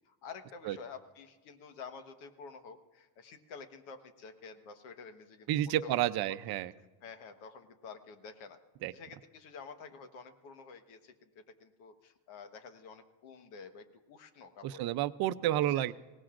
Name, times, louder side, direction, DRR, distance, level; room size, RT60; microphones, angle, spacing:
voice 1, 0.0-5.5 5.8-6.0 6.3-6.6 7.0-8.6 8.9-14.9 15.7-15.9, left 5 dB, 80° left, 8 dB, 1.5 m, -50 dB
voice 2, 5.5-6.7 8.8-8.9 14.6-15.9, right 13 dB, 50° right, 13 dB, 0.6 m, -30 dB
22.5 x 18.0 x 2.5 m, 1.3 s
cardioid pair, 120°, 49 cm